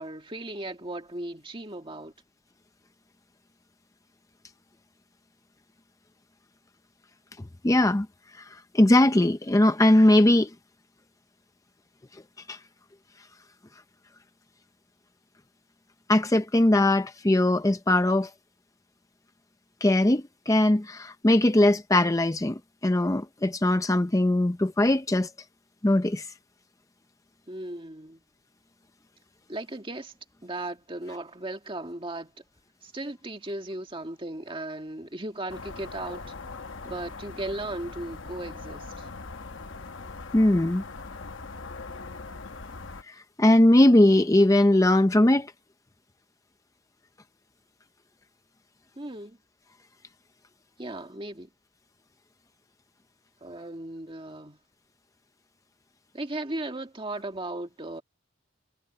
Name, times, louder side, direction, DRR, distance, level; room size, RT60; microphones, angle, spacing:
voice 1, 0.0-2.1 27.5-28.2 29.5-30.1 30.4-32.3 32.8-36.3 36.8-39.1 49.0-49.4 50.8-51.5 53.4-54.6 56.1-58.0, right 1 dB, 25° right, 1.9 m, -36 dB
voice 2, 7.6-8.1 8.4-8.5 8.7-10.5 12.5-12.6 16.1-18.3 19.8-25.3 25.8-26.3 40.3-40.8 43.1-45.5, left 1 dB, 15° left, 0.5 m, -20 dB
sound 1, 35.5-43.0, left 3 dB, 65° left, 1.0 m, -41 dB
head